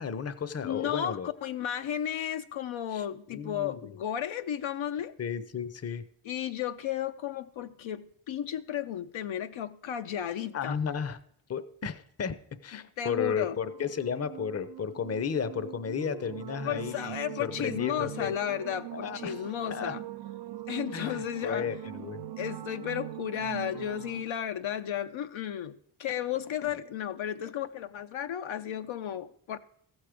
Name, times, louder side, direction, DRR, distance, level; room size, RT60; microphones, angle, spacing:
voice 1, 0.0-1.3 2.9-3.9 5.2-6.0 10.5-11.2 11.5-18.3 18.9-19.4 19.7-20.0 20.9-22.2, left 7 dB, 30° left, 0.7 m, -34 dB
voice 2, 0.6-5.1 6.2-10.8 12.7-13.6 16.6-20.0 20.7-22.1 22.4-29.6, left 10 dB, 70° left, 0.6 m, -34 dB
sound 1, 13.6-24.2, right 12 dB, 55° right, 0.6 m, -42 dB
14.5 x 6.3 x 5.0 m
cardioid pair, 60°, 50 cm